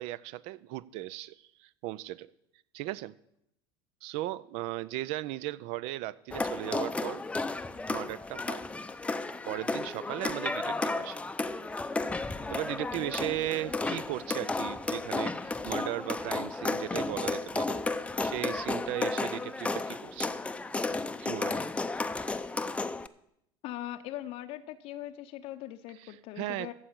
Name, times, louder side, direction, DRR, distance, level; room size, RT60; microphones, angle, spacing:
voice 1, 0.0-2.3 2.7-3.1 4.0-7.2 7.9-8.6 9.5-11.2 12.5-17.8 18.2-20.3 21.2-21.6 26.0-26.7, right 16 dB, 55° right, 0.5 m, -37 dB
sound 1, 6.3-23.1, left 3 dB, 10° left, 0.6 m, -33 dB
voice 2, 23.6-26.7, left 13 dB, 55° left, 0.7 m, -40 dB
14.5 x 4.8 x 8.7 m
hypercardioid pair, 75°, 12 cm